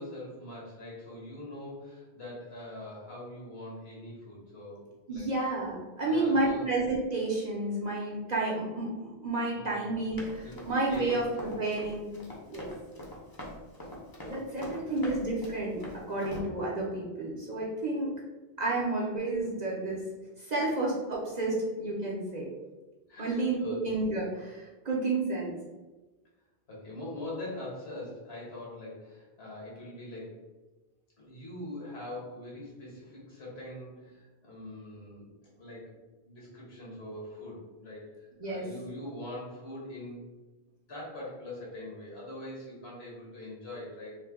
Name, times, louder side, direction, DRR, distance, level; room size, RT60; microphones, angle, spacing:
voice 1, 0.0-4.8 5.1-5.3 6.0-6.6 9.5-10.6 10.9-11.2 14.2-15.0 17.2-17.3 17.9-18.0 23.1-23.9 26.7-30.4 31.2-36.0 36.2-40.2 40.9-44.2, left 1 dB, 70° left, -5 dB, 1.4 m, -43 dB
voice 2, 5.1-12.1 12.5-12.7 14.3-18.1 18.6-20.1 20.4-22.5 23.2-25.6 38.4-38.7, right 2 dB, 50° right, -4 dB, 0.6 m, -31 dB
Run, 10.2-16.4, equal, 25° left, 0.5 m, -43 dB
3.2 x 2.1 x 3.4 m, 1.2 s
omnidirectional pair, 1.1 m